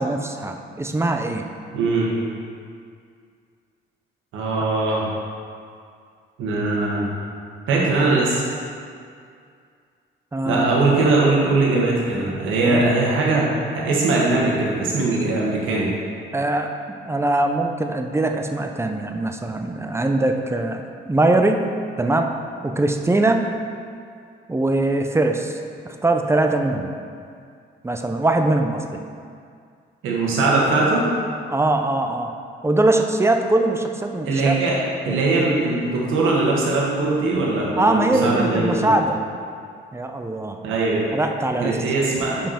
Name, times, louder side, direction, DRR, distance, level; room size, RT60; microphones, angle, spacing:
voice 1, 0.0-1.4 10.3-10.8 12.6-12.8 16.3-16.7 17.0-21.6 22.0-22.3 22.6-23.4 24.5-25.6 25.8-26.9 27.8-28.8 31.5-32.4 32.6-34.6 35.0-35.2 37.8-39.3 39.9-40.6 41.1-41.8, right 2 dB, 15° right, 4 dB, 0.5 m, -21 dB
voice 2, 1.7-2.1 4.3-5.1 6.4-7.0 7.7-8.4 10.4-13.5 13.7-15.9 30.0-31.0 34.2-34.8 35.0-38.9 40.6-41.1 41.6-42.4, right 3 dB, 90° right, -4 dB, 1.4 m, -20 dB
5.6 x 5.3 x 4.3 m, 2.3 s
cardioid pair, 90°, 20 cm